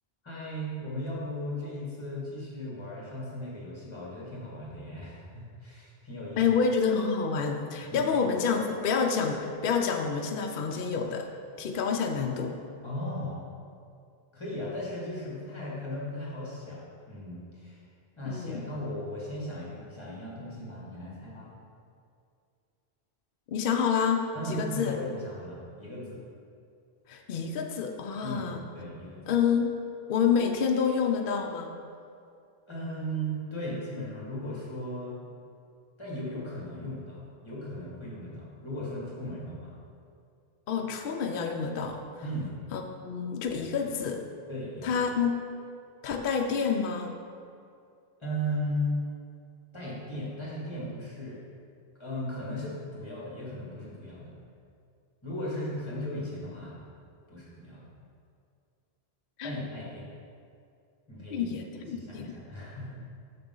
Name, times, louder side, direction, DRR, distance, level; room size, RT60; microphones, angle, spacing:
voice 1, 0.2-6.4 7.9-8.1 12.8-13.4 14.3-17.8 18.2-21.5 24.3-26.2 28.2-29.2 32.7-35.3 36.0-39.8 42.2-42.6 43.6-43.7 44.5-45.0 48.2-49.0 49.7-51.4 52.0-54.3 55.2-56.7 57.3-57.9 59.4-60.1 61.1-61.5 61.8-63.0, equal, 25° left, -6 dB, 1.8 m, -37 dB
voice 2, 6.4-11.3 11.6-12.6 18.2-18.6 23.5-25.0 27.1-28.6 29.3-29.7 30.1-31.7 40.7-42.0 42.7-44.2 44.8-45.3 46.0-47.2 59.4-59.5 61.3-62.3, left 6 dB, 65° left, 3 dB, 0.7 m, -28 dB
6.7 x 6.6 x 3.8 m, 2.4 s
omnidirectional pair, 1.0 m